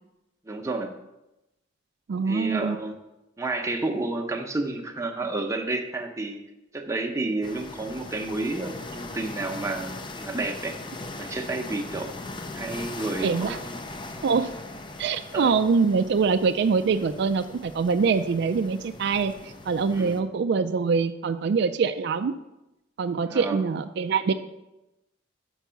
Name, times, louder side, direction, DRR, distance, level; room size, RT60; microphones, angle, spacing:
voice 1, 0.4-0.9 2.2-2.9 3.4-6.4 6.7-10.8 11.2-12.1 12.5-13.8 15.3-15.5 19.9-20.2 23.3-23.6, right 2 dB, 15° right, 3 dB, 0.8 m, -30 dB
voice 2, 2.1-2.8 13.2-13.6 14.2-14.5 15.0-22.3 23.0-24.3, right 5 dB, 65° right, 9 dB, 0.4 m, -24 dB
sound 1, 7.4-20.2, left 2 dB, 25° left, 0.6 m, -40 dB
6.2 x 5.9 x 5.7 m, 0.94 s
head